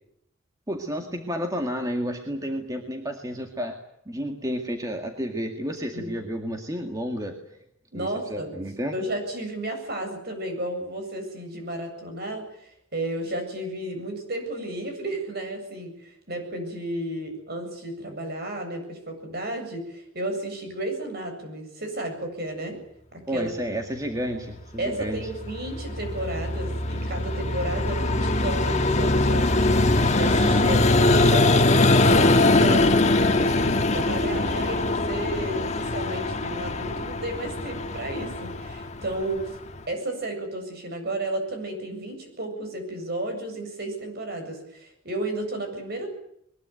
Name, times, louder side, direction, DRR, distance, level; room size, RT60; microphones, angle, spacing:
voice 1, 0.7-3.8 4.1-7.4 7.9-8.9 23.3-25.2, equal, 15° right, 3 dB, 2.1 m, -31 dB
voice 2, 7.9-8.5 8.9-22.8 23.1-23.5 24.8-29.7 30.1-31.5 32.0-39.6 39.9-46.1, right 1 dB, 50° right, 5 dB, 7.7 m, -32 dB
Vehicle, 25.1-39.8, left 2 dB, 35° left, 1.5 m, -22 dB
22.5 x 21.0 x 9.4 m, 0.74 s
head